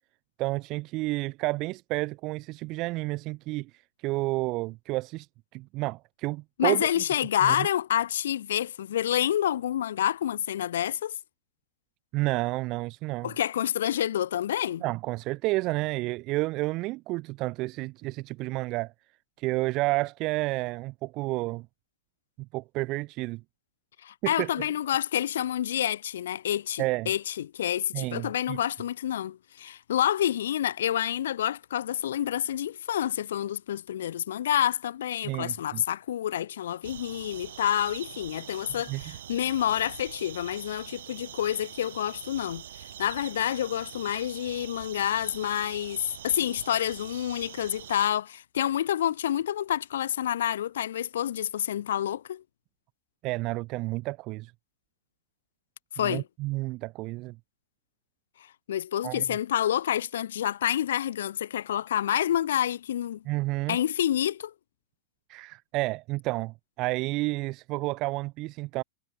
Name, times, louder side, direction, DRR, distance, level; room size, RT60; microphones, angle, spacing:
voice 1, 0.4-5.3 5.5-6.9 7.4-7.7 12.1-13.3 14.8-18.9 19.4-21.7 22.5-23.4 24.2-24.7 26.8-27.1 27.9-28.6 35.2-35.8 38.7-39.0 53.2-54.5 56.0-57.4 59.0-59.2 63.3-63.8 65.3-68.8, right 21 dB, 35° right, 0.4 m, -30 dB
voice 2, 6.6-11.1 13.2-14.8 24.0-42.6 43.0-52.4 56.0-56.2 58.7-63.2 63.7-64.5, left 11 dB, 90° left, 0.6 m, -28 dB
sound 1, 36.8-48.1, right 11 dB, 85° right, 0.7 m, -44 dB
supercardioid pair, 160°, 0 cm